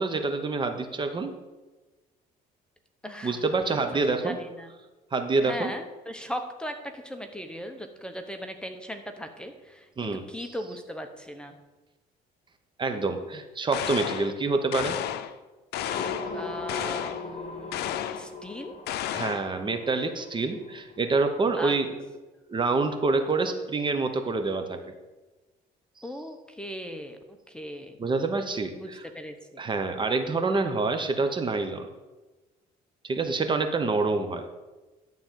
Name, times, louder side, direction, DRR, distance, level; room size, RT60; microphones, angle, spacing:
voice 1, 0.0-1.3 3.2-4.4 5.1-5.7 10.0-10.2 12.8-15.0 19.1-21.9 22.5-24.8 28.0-29.0 29.6-31.9 33.0-34.5, right 3 dB, 30° right, 7 dB, 0.9 m, -27 dB
voice 2, 3.0-4.7 5.4-11.6 16.3-18.8 21.6-21.8 26.0-28.0 28.7-29.6 33.8-33.9, equal, 5° left, 6 dB, 0.9 m, -39 dB
sound 1, 13.7-14.3 14.7-15.4 15.7-16.4 16.7-17.2 17.7-18.3 18.9-19.5, left 11 dB, 75° left, 0.6 m, -32 dB
sound 2, 15.8-21.7, left 3 dB, 40° left, 1.8 m, -39 dB
11.5 x 3.8 x 7.4 m, 1.2 s
cardioid pair, 110°, 17 cm